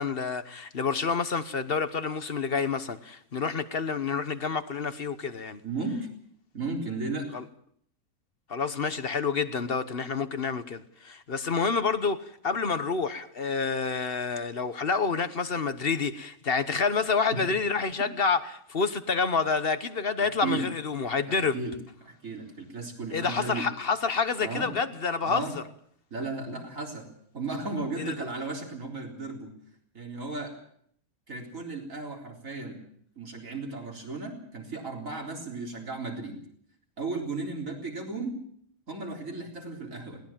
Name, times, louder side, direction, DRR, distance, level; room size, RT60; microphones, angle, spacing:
voice 1, 0.0-5.6 7.3-7.4 8.5-21.6 23.1-25.4 28.0-28.1, left 5 dB, 45° left, 1.2 m, -28 dB
voice 2, 5.6-6.1 6.5-7.3 20.2-20.6 21.3-21.7 22.0-23.7 24.4-24.7 25.2-25.5 26.1-27.1 27.3-29.5 29.9-30.5 31.3-32.8 33.2-36.4 37.0-38.4 38.9-40.2, right 3 dB, 60° right, 4.4 m, -35 dB
21.5 x 18.5 x 7.4 m
omnidirectional pair, 1.5 m